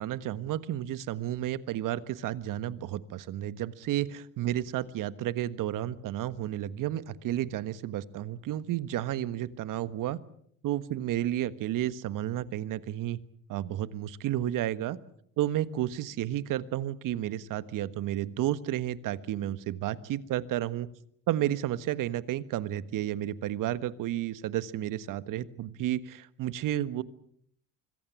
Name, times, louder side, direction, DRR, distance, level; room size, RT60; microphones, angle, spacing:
voice 1, 0.0-10.2 10.6-13.2 13.5-15.0 15.4-20.9 21.3-27.0, right 12 dB, 55° right, 14 dB, 1.5 m, -32 dB
25.0 x 22.0 x 7.3 m, 0.67 s
hypercardioid pair, 65°, 38 cm